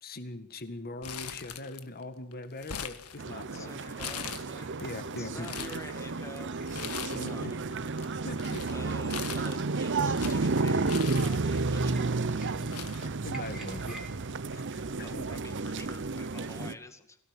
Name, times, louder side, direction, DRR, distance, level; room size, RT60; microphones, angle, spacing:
voice 1, 0.0-4.3 4.8-5.5 7.1-7.5 8.2-8.6 13.2-14.0 14.5-15.3 16.6-16.8, left 2 dB, 45° left, 10 dB, 1.8 m, -41 dB
Crumpling crinkling, 1.0-2.0 2.3-3.6 4.0-4.8 5.2-5.8 6.7-7.5 7.7-11.8 12.4-12.5 12.7-13.8 14.1-14.2 15.1-15.4, left 8 dB, 90° left, 1.7 m, -41 dB
sound 1, 3.2-15.7, right 1 dB, 5° right, 3.7 m, -54 dB
sound 2, 3.2-16.7, right 3 dB, 55° right, 0.8 m, -32 dB
voice 2, 3.5-4.7 5.2-6.5 6.9-7.6 8.7-12.2 15.0-17.2, left 2 dB, 15° left, 8 dB, 2.1 m, -49 dB
23.5 x 17.5 x 9.0 m, 0.74 s
head